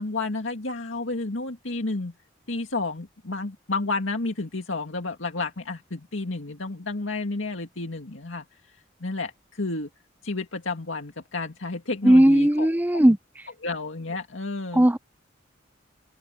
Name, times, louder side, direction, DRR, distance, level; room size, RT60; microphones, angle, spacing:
voice 1, 0.0-2.1 2.5-8.4 9.0-9.9 10.2-13.0 13.6-14.9, left 3 dB, 90° left, 2.2 m, -31 dB
voice 2, 12.0-13.2 14.7-15.0, right 1 dB, 10° right, 0.5 m, -17 dB
head